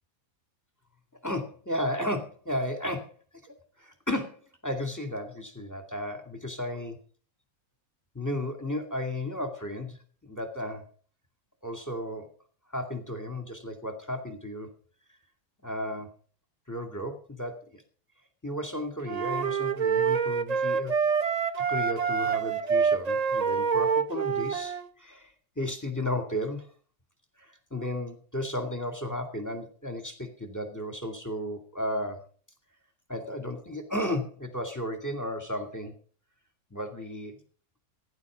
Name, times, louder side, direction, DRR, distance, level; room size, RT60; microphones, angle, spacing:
voice 1, 1.2-3.1 3.4-7.0 8.1-10.8 11.6-12.3 12.7-14.7 15.6-16.1 16.7-17.8 18.4-20.9 21.7-26.7 27.4-32.2 33.1-35.9 36.7-37.4, left 1 dB, 10° left, 4 dB, 2.2 m, -34 dB
sound 1, 19.0-24.9, right 6 dB, 40° right, 0.5 m, -26 dB
15.5 x 11.0 x 5.1 m, 0.43 s
omnidirectional pair, 1.6 m